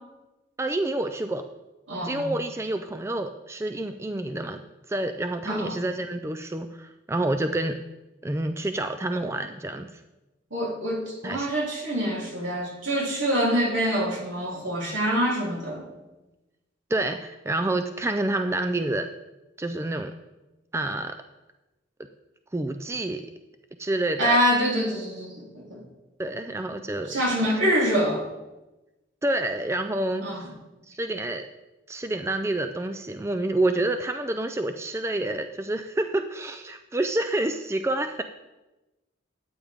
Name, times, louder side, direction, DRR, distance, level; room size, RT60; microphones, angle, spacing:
voice 1, 0.6-1.4 2.0-4.6 4.9-7.8 8.2-9.9 11.2-11.5 16.9-19.1 19.6-20.1 20.7-21.1 22.5-23.2 23.8-24.4 26.2-27.2 29.2-30.5 30.9-31.5 31.9-38.2, right 2 dB, 15° right, 8 dB, 0.3 m, -28 dB
voice 2, 1.9-2.3 5.5-5.8 10.5-15.8 24.2-25.8 27.1-28.3 30.2-30.4, equal, 80° right, -4 dB, 3.2 m, -25 dB
12.5 x 8.8 x 3.5 m, 1.1 s
head